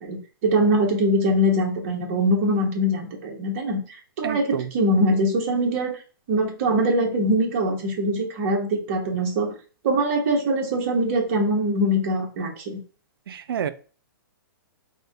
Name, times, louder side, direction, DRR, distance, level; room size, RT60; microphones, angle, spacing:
voice 1, 0.0-3.8 4.2-6.0 6.3-9.5 9.8-12.8, equal, 40° right, 0.9 m, -22 dB
voice 2, 4.2-4.7 13.3-13.7, right 9 dB, 90° right, 0.4 m, -28 dB
3.4 x 2.1 x 3.3 m
hypercardioid pair, 165°, 12 cm